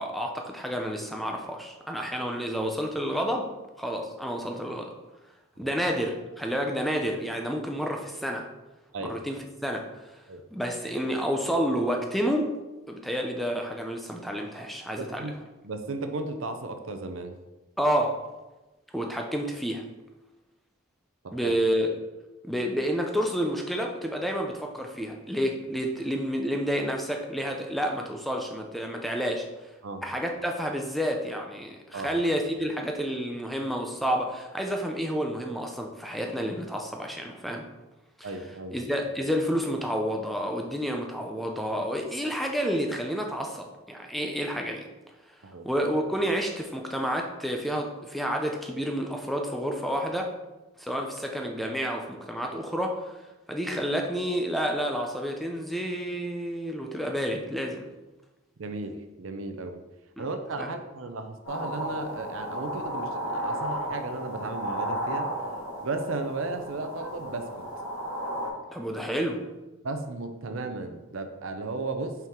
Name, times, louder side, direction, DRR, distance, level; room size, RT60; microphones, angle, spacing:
voice 1, 0.0-3.5 3.8-4.9 5.6-8.5 9.0-9.9 10.5-12.6 12.9-15.3 17.8-18.2 18.9-19.8 21.3-21.9 22.4-29.5 30.0-37.6 38.7-44.9 45.6-50.3 50.8-53.0 53.5-57.9 60.2-60.3 60.6-60.7 68.7-69.4, equal, ahead, 2 dB, 0.5 m, -29 dB
voice 2, 15.0-15.3 15.6-17.3 21.2-21.5 29.8-30.0 31.9-32.1 38.2-38.8 45.4-45.7 58.6-59.8 60.2-65.3 65.8-67.6 69.8-72.2, right 3 dB, 65° right, 7 dB, 0.6 m, -35 dB
sound 1, 61.4-68.5, right 1 dB, 70° left, 2.0 m, -33 dB
5.7 x 4.6 x 3.6 m, 1.1 s
head